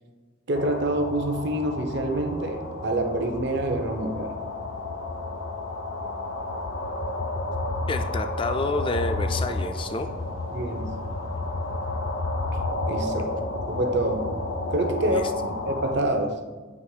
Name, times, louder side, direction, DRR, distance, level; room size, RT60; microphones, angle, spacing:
sound 1, 0.5-16.0, left 2 dB, 70° left, 0.6 m, -31 dB
voice 1, 0.5-4.4 10.5-10.9 12.8-13.4 13.7-14.3 14.7-15.3 15.6-16.4, right 1 dB, 55° right, 5 dB, 0.7 m, -26 dB
voice 2, 7.9-10.1 15.0-15.2, left 2 dB, 25° left, 8 dB, 0.4 m, -29 dB
8.1 x 3.0 x 4.8 m, 1.4 s
head